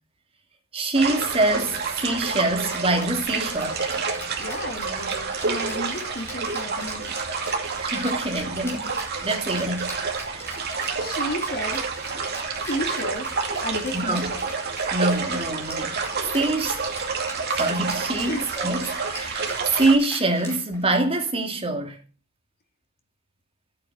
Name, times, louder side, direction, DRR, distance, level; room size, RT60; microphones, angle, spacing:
voice 1, 0.7-3.8 7.8-9.9 10.3-10.5 13.9-14.3 14.9-16.0 16.3-16.8 17.5-22.0, right 2 dB, 25° right, 2.3 m, -25 dB
sound 1, 0.9-19.9, right 4 dB, 45° right, 2.4 m, -29 dB
Rattle (instrument), 2.6-21.1, equal, 10° left, 4.7 m, -42 dB
voice 2, 4.4-7.3 8.1-8.2 11.0-11.9 12.5-13.3 13.6-14.5 18.2-18.5, left 1 dB, 45° left, 2.3 m, -33 dB
12.5 x 8.7 x 4.8 m
head